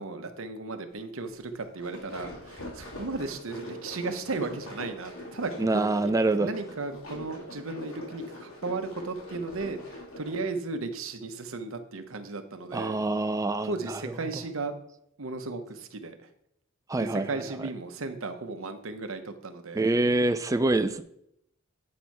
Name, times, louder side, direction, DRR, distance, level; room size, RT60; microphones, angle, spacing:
voice 1, 0.0-5.9 6.4-13.0 13.6-14.7 15.2-16.3 17.0-19.9, right 3 dB, 70° right, 8 dB, 0.8 m, -35 dB
sound 1, 1.6-10.5, left 1 dB, 85° left, 2.9 m, -43 dB
voice 2, 5.6-6.5 12.7-14.0 16.9-17.3 19.7-21.0, right 2 dB, 15° right, 10 dB, 0.3 m, -25 dB
8.3 x 4.4 x 4.6 m, 0.74 s
head